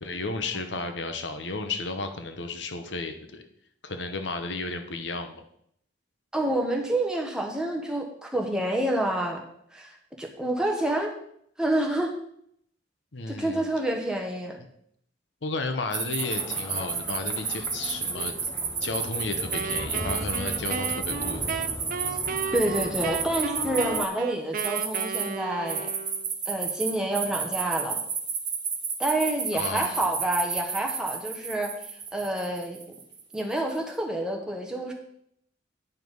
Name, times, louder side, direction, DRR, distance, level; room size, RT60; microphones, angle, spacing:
voice 1, 0.0-3.5 3.8-5.4 13.1-13.6 15.4-18.3 18.8-21.4 29.5-30.0, left 3 dB, 80° left, 7 dB, 0.9 m, -33 dB
voice 2, 6.3-9.4 9.7-11.1 11.6-12.1 13.3-14.6 22.5-25.9 26.5-28.0 29.0-31.7 32.1-32.8 33.3-34.9, right 1 dB, 5° right, 1 dB, 1.2 m, -28 dB
sound 1, 15.9-24.1 24.6-25.2 25.7-33.5, right 6 dB, 25° right, 1.6 m, -30 dB
Lucha Libre SF, 16.2-24.1, left 1 dB, 15° left, 0.6 m, -39 dB
Wind instrument woodwind instrument, 19.5-26.4, right 6 dB, 50° right, 0.4 m, -34 dB
10.0 x 4.8 x 5.4 m, 0.71 s
head